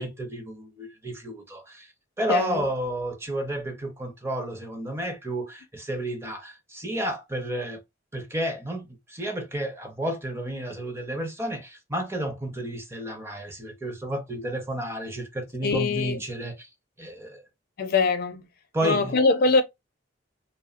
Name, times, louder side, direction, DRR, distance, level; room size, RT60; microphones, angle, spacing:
voice 1, 0.0-7.8 8.1-16.7 17.0-17.4 18.7-19.2, right 1 dB, 15° right, 0.5 m, -31 dB
voice 2, 2.3-2.7 15.6-16.2 17.8-18.4 18.8-19.6, left 4 dB, 50° left, 0.4 m, -23 dB
3.0 x 2.0 x 2.3 m
head